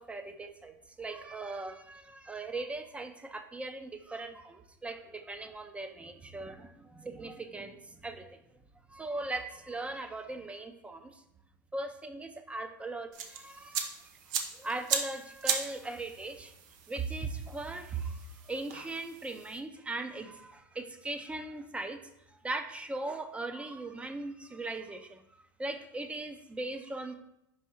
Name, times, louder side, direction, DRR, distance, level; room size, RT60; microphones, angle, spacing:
voice 1, 0.0-8.4 8.9-11.2 11.7-14.0 14.6-16.5 16.9-22.0 22.4-25.2 25.6-27.2, right 2 dB, 10° right, 8 dB, 0.6 m, -39 dB
sound 1, 13.1-19.6, right 7 dB, 75° right, 0.8 m, -37 dB
5.3 x 4.8 x 4.3 m, 0.84 s
supercardioid pair, 110°, 11 cm